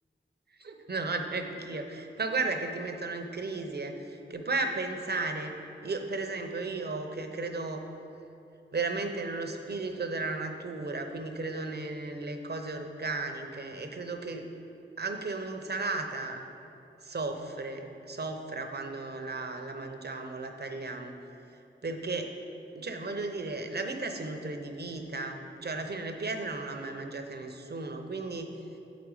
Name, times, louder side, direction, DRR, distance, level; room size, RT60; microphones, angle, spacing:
voice 1, 0.6-5.6 5.8-7.8 8.7-14.5 15.0-16.4 17.0-21.1 21.8-22.3 22.7-28.6, right 3 dB, 55° right, 5 dB, 0.7 m, -34 dB
7.9 x 5.1 x 4.8 m, 2.8 s
cardioid pair, 40°, 21 cm